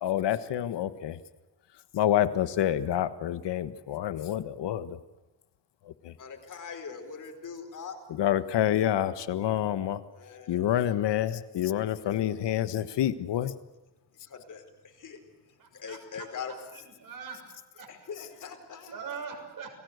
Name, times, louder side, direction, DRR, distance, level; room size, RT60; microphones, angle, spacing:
voice 1, 0.0-1.2 1.9-5.0 6.0-6.1 8.2-10.0 10.5-13.5, left 11 dB, 80° left, 13 dB, 1.5 m, -27 dB
voice 2, 6.2-8.0 10.1-10.6 14.2-16.5 17.9-19.2, left 6 dB, 45° left, 5 dB, 4.7 m, -42 dB
voice 3, 15.6-16.0 16.7-17.4 17.7-17.9 18.9-19.7, right 6 dB, 50° right, 4 dB, 6.6 m, -41 dB
30.0 x 20.5 x 8.1 m, 1.1 s
wide cardioid pair, 160°, 41 cm